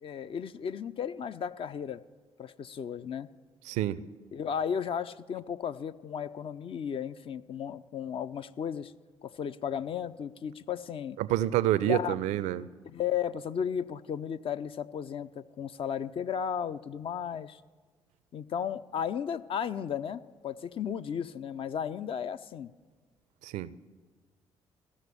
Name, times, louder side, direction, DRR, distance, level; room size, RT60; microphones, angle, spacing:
voice 1, 0.0-2.0 2.4-3.3 4.3-8.9 9.2-11.2 11.9-12.2 12.8-17.6 18.3-22.7, left 8 dB, 45° left, 13 dB, 0.4 m, -34 dB
voice 2, 3.7-4.0 11.2-12.7 23.4-23.7, right 13 dB, 65° right, 17 dB, 0.4 m, -28 dB
14.5 x 6.2 x 6.8 m, 1.5 s
hypercardioid pair, 45°, 13 cm